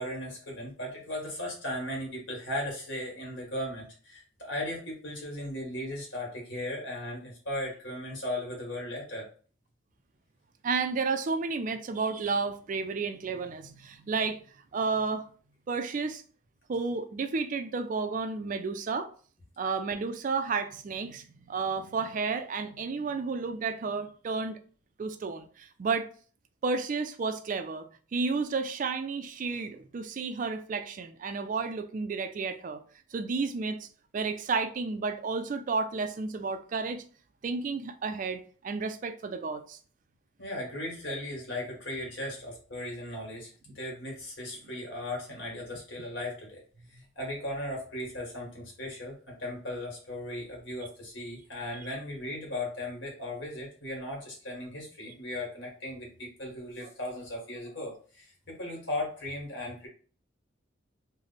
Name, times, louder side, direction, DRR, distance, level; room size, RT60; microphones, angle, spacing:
voice 1, 0.0-9.2 40.4-43.5 43.7-59.9, left 1 dB, 65° left, 1.6 m, -37 dB
voice 2, 10.6-14.4 14.7-15.3 15.7-16.2 16.7-19.1 19.6-24.6 25.0-26.1 26.6-32.8 33.1-33.9 34.1-37.0 37.4-39.8 41.0-41.1, right 4 dB, 45° right, 0.3 m, -32 dB
3.3 x 2.1 x 3.9 m
head